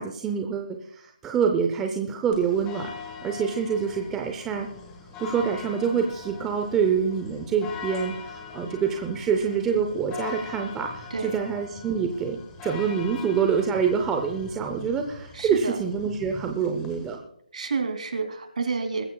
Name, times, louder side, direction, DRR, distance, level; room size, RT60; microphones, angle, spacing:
voice 1, 0.0-2.9 3.2-4.7 5.2-17.2, right 6 dB, 5° right, 3 dB, 0.6 m, -26 dB
sound 1, 2.3-17.2, left 5 dB, 10° left, 1.4 m, -41 dB
voice 2, 15.3-15.8 17.5-19.1, right 4 dB, 55° right, 6 dB, 2.7 m, -29 dB
21.5 x 14.5 x 2.3 m, 0.66 s
hypercardioid pair, 175°, 5 cm